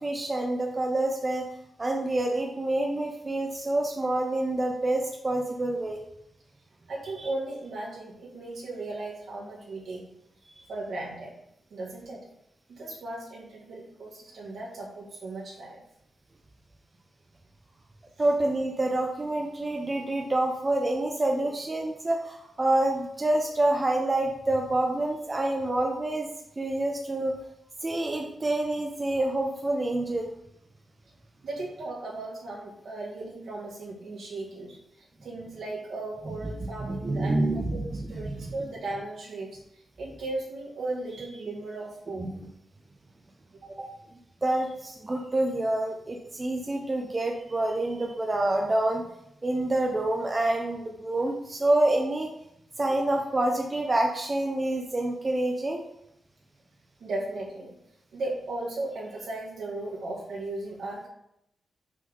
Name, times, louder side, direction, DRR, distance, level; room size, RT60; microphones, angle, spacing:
voice 1, 0.0-1.4 1.8-6.0 7.2-7.3 10.6-10.7 18.2-26.3 26.6-27.3 27.8-30.3 36.3-38.5 42.2-42.5 43.8-43.9 44.4-49.0 49.4-52.3 52.8-55.8, right 1 dB, 20° right, 1 dB, 0.6 m, -27 dB
voice 2, 6.9-10.0 10.7-11.3 11.7-12.2 12.7-15.8 31.4-37.4 37.7-39.6 40.0-42.3 43.6-43.7 52.9-53.0 57.0-57.7 58.1-61.1, right 2 dB, 65° right, -4 dB, 2.1 m, -36 dB
6.1 x 3.8 x 5.4 m, 0.80 s
wide cardioid pair, 175°, 0 cm